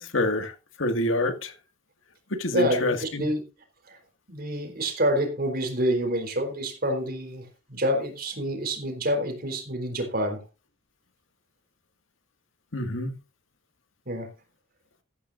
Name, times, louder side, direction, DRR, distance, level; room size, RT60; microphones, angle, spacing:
voice 1, 0.0-1.5 2.3-3.3 12.7-13.2, left 1 dB, 75° left, 2.1 m, -27 dB
voice 2, 4.3-10.4 14.1-14.3, equal, 50° right, 4.1 m, -27 dB
14.0 x 13.5 x 2.6 m
head